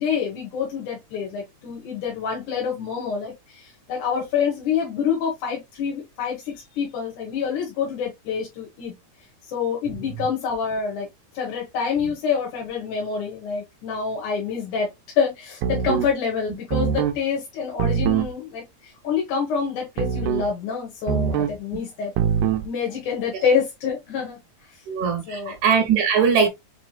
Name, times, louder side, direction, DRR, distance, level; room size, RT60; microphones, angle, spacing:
voice 1, 0.0-8.9 9.5-11.1 11.3-14.9 15.2-22.1 22.6-24.4 25.3-25.6, left 6 dB, 75° left, 2.8 m, -27 dB
sound 1, 15.6-16.1 16.7-17.2 17.8-18.3 20.0-20.5 21.1-21.6 22.2-22.7, right 8 dB, 90° right, 2.1 m, -23 dB
voice 2, 24.9-26.5, right 6 dB, 75° right, 2.2 m, -20 dB
6.4 x 3.0 x 2.3 m
omnidirectional pair, 3.5 m